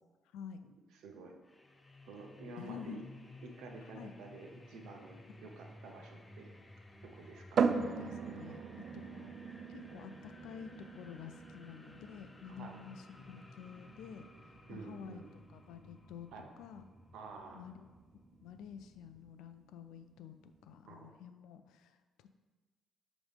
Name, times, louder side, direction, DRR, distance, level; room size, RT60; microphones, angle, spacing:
voice 1, 1.0-1.4 2.1-3.0 3.4-6.5 7.0-7.7 12.6-12.8 14.7-15.3 16.3-16.5 17.1-17.7 20.9-21.1, right 3 dB, 80° right, 2 dB, 0.9 m, -50 dB
sound 1, 1.4-19.4, left 2 dB, 20° left, 0.5 m, -56 dB
voice 2, 2.6-3.0 3.9-4.1 5.3-5.4 7.7-8.6 8.9-9.3 9.7-15.2 15.5-16.3 16.6-16.8 17.5-17.9 18.4-22.3, left 8 dB, 90° left, 9 dB, 0.4 m, -49 dB
sound 2, 7.6-21.1, right 5 dB, 60° right, 0.3 m, -41 dB
6.2 x 3.1 x 5.2 m, 1.3 s
cardioid pair, 90°, 0 cm